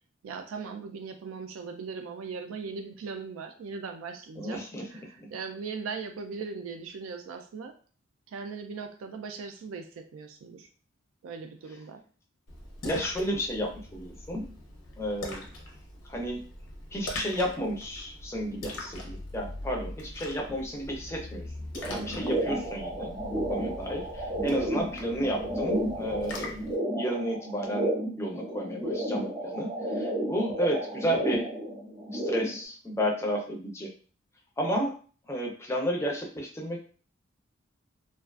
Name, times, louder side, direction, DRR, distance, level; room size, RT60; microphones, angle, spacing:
voice 1, 0.2-4.6 4.9-7.7 8.3-10.7 11.2-12.0 22.3-22.6 24.5-24.8, right 5 dB, 85° right, 5 dB, 0.3 m, -39 dB
voice 2, 4.4-4.8 5.2-5.3 12.9-14.5 15.0-15.5 16.1-16.4 16.9-21.5 21.8-26.5 27.0-27.9 28.2-31.5 32.1-33.9 34.6-35.0 35.3-36.8, equal, 15° left, -1 dB, 0.4 m, -32 dB
Splash splatter, 12.5-26.8, left 1 dB, 80° left, 0.6 m, -41 dB
sound 1, 21.8-32.6, right 1 dB, 30° right, 0.6 m, -32 dB
2.4 x 2.3 x 2.3 m, 0.41 s
head